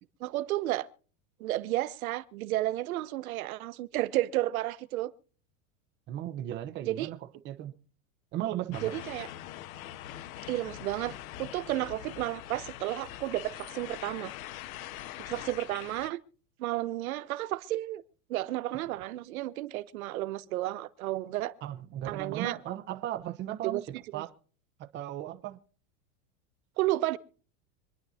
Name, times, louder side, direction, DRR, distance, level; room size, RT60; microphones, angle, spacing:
voice 1, 0.2-0.9 1.4-5.1 6.8-7.1 8.8-9.3 10.5-14.3 15.3-16.2 16.6-18.0 18.3-21.5 22.1-22.5 23.6-23.8 24.1-24.2 26.8-27.2, right 16 dB, 80° right, 1.1 m, -32 dB
voice 2, 6.1-7.2 7.4-7.7 8.3-8.9 21.6-24.3 24.8-25.6, right 12 dB, 25° right, 0.9 m, -36 dB
sound 1, 8.7-16.1, left 13 dB, 75° left, 0.9 m, -43 dB
26.0 x 10.5 x 2.8 m
supercardioid pair, 160°, 42 cm